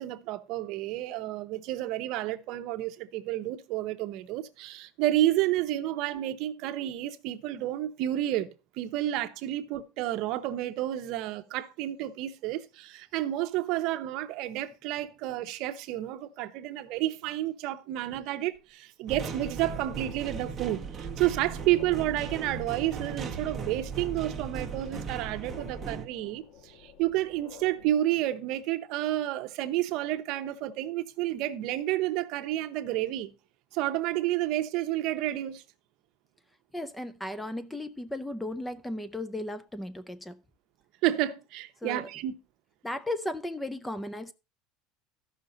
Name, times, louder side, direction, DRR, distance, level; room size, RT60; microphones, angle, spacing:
voice 1, 0.0-8.5 8.8-33.3 33.7-35.6 41.0-42.4, right 14 dB, 55° right, 0.8 m, -30 dB
sound 1, 18.5-18.6 19.2-28.0, left 6 dB, 55° left, 1.5 m, -53 dB
sound 2, 19.1-26.1, right 5 dB, 15° right, 1.2 m, -37 dB
voice 2, 36.7-40.4 41.8-42.1 42.8-44.3, left 1 dB, 5° left, 0.4 m, -35 dB
14.0 x 5.8 x 3.9 m
cardioid pair, 160°, 0 cm